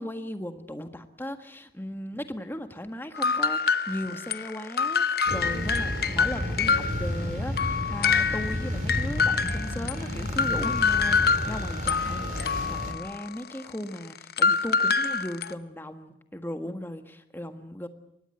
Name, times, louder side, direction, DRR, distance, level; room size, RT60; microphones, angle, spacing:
voice 1, 0.0-12.4 12.7-17.9, left 1 dB, 10° left, 7 dB, 1.6 m, -37 dB
sound 1, 3.1-7.3 7.6-15.5, left 5 dB, 60° left, 0.9 m, -26 dB
sound 2, 5.3-12.9, equal, 50° right, 3.6 m, -32 dB
24.0 x 19.5 x 7.9 m, 0.79 s
head